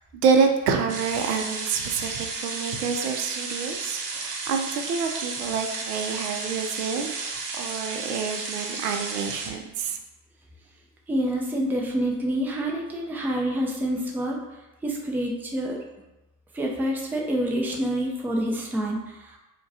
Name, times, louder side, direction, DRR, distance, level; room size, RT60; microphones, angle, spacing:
voice 1, 0.2-10.0, right 5 dB, 80° right, 5 dB, 0.6 m, -27 dB
sound 1, 0.9-9.5, right 4 dB, 40° right, 0.8 m, -33 dB
voice 2, 11.1-14.4 14.8-15.8 16.5-19.4, right 1 dB, 5° right, -1 dB, 0.4 m, -27 dB
4.5 x 2.3 x 2.6 m, 1.0 s
hypercardioid pair, 75°, 47 cm